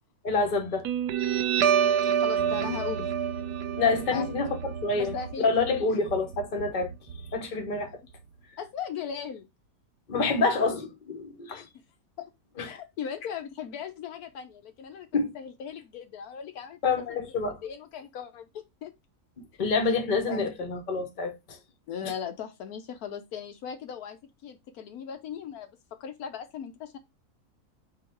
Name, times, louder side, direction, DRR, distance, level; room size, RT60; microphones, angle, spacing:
voice 1, 0.2-0.9 3.8-4.6 4.8-6.9 7.3-7.9 10.1-11.6 12.6-12.7 15.1-15.3 16.8-17.6 19.6-21.6 22.0-22.1, left 4 dB, 35° left, 0.9 m, -27 dB
Guitar, 0.8-7.8, right 8 dB, 85° right, 1.2 m, -28 dB
voice 2, 2.0-3.1 4.1-4.3 5.0-5.5 5.9-6.0 8.6-9.5 11.5-11.7 12.2-12.3 12.6-15.1 15.3-16.8 17.1-18.9 20.3-20.5 21.9-25.7 26.0-27.0, left 8 dB, 75° left, 1.2 m, -38 dB
3.9 x 2.9 x 4.3 m
omnidirectional pair, 1.6 m